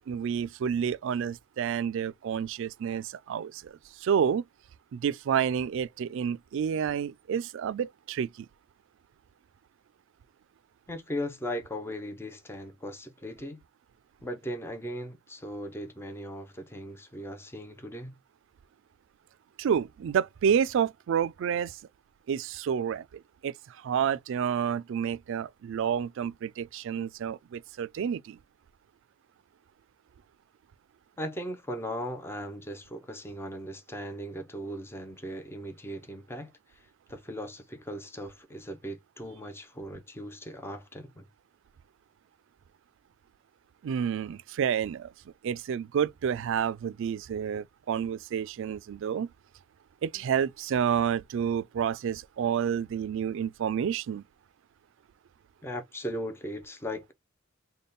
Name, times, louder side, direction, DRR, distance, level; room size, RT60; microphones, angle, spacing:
voice 1, 0.1-3.7 4.0-4.4 4.9-8.3 19.6-21.7 22.3-23.0 23.4-23.5 23.8-28.4 43.8-45.1 45.4-49.3 50.0-54.2, right 8 dB, 65° right, 0.3 m, -29 dB
voice 2, 10.9-13.6 14.2-18.2 31.2-41.2 50.1-50.2 55.6-57.1, equal, 10° left, 0.5 m, -38 dB
3.5 x 2.2 x 3.8 m
head